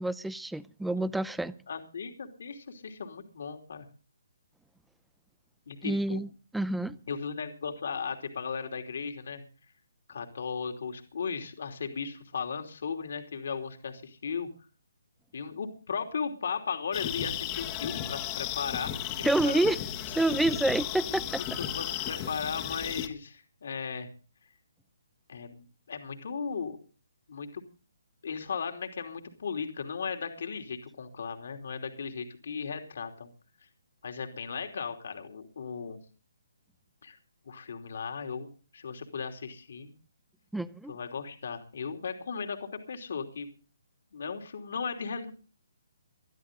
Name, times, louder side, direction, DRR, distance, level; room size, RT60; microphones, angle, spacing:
voice 1, 0.0-1.5 5.8-6.3 6.5-7.0 19.2-19.8 20.2-21.4 40.5-40.9, right 2 dB, ahead, 0.6 m, -28 dB
voice 2, 1.7-3.9 5.7-6.2 7.1-9.4 10.1-14.5 15.3-19.7 20.1-20.2 21.6-24.1 25.3-26.8 27.3-27.6 28.2-33.3 34.0-36.0 37.0-37.2 37.4-39.9 40.9-43.5 44.1-45.3, left 6 dB, 60° left, 3.0 m, -36 dB
sound 1, 16.9-23.1, left 10 dB, 25° left, 1.7 m, -34 dB
22.0 x 12.5 x 3.8 m
hypercardioid pair, 155°, 0 cm